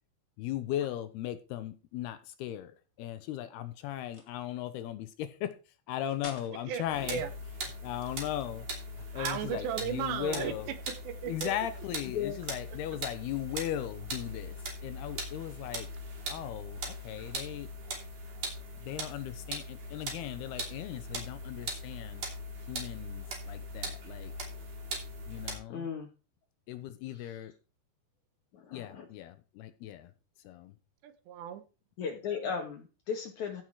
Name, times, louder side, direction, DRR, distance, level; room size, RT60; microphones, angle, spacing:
voice 1, 0.4-2.7 3.0-5.5 5.9-7.2 7.8-8.7 9.0-10.7 11.2-15.9 16.3-17.7 18.8-22.3 22.7-24.3 25.3-25.9 26.7-27.5 28.7-30.1 30.5-30.7, left 12 dB, 75° left, 2.6 m, -37 dB
sound 1, 4.0-4.4 6.1-6.6 7.9-8.8, left 3 dB, 30° left, 1.2 m, -49 dB
voice 2, 6.7-7.3 9.2-11.5 31.0-31.6, right 9 dB, 80° right, 3.4 m, -36 dB
sound 2, 6.9-25.6, right 1 dB, 50° right, 4.2 m, -40 dB
voice 3, 25.7-26.1 27.2-27.4 28.5-29.1 32.0-33.6, left 6 dB, 60° left, 2.1 m, -36 dB
15.5 x 6.0 x 4.7 m
omnidirectional pair, 5.0 m